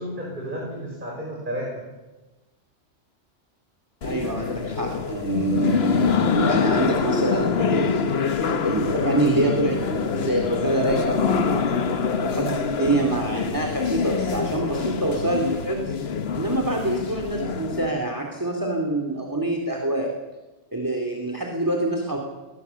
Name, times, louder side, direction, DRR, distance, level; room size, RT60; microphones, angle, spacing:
voice 1, 0.0-1.8 4.5-5.0, equal, 45° right, -3 dB, 5.9 m, -33 dB
sound 1, 4.0-17.9, left 6 dB, 65° left, 1.3 m, -25 dB
voice 2, 4.0-8.0 8.6-15.9 16.3-20.1 20.7-22.2, right 2 dB, 15° right, 2 dB, 2.6 m, -26 dB
21.5 x 19.0 x 7.0 m, 1.1 s
omnidirectional pair, 1.1 m